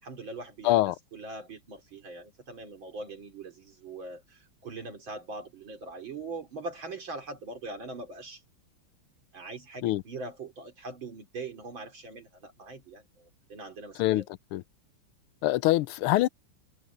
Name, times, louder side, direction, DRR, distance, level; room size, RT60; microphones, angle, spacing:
voice 1, 0.0-8.4 9.3-14.3, right 3 dB, 65° right, 3.9 m, -42 dB
voice 2, 0.6-0.9 9.8-10.0 14.0-14.2 14.5-14.6 15.4-16.3, left 16 dB, 85° left, 1.5 m, -24 dB
omnidirectional pair, 2.4 m